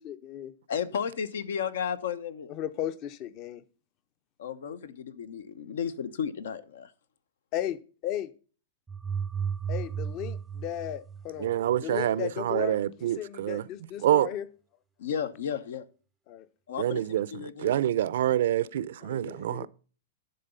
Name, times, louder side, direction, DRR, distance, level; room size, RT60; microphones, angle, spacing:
voice 1, 0.0-0.5 2.5-3.6 7.5-8.3 9.7-11.6 11.8-12.8 13.2-14.5 16.3-16.5 19.0-19.7, left 11 dB, 35° left, 0.6 m, -35 dB
voice 2, 0.7-2.5 4.4-6.9 15.0-15.8 16.7-17.0 17.3-17.7, left 7 dB, 80° left, 0.9 m, -33 dB
sound 1, 8.9-11.8, right 7 dB, 10° right, 0.3 m, -34 dB
voice 3, 11.4-13.6 14.0-14.3 16.8-19.7, right 12 dB, 70° right, 0.5 m, -27 dB
11.0 x 4.0 x 6.7 m
supercardioid pair, 155°, 0 cm